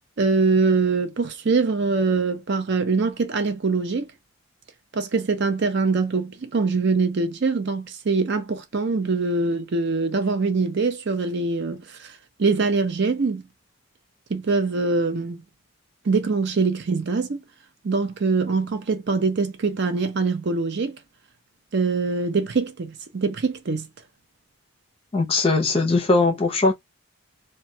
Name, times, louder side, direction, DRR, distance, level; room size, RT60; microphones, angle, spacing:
voice 1, 0.2-4.1 4.9-13.4 14.3-15.4 16.0-17.4 17.8-21.0 21.7-23.9, right 4 dB, 50° right, 0.5 m, -23 dB
voice 2, 25.1-26.7, left 3 dB, 25° left, 0.5 m, -20 dB
2.2 x 2.2 x 2.6 m
head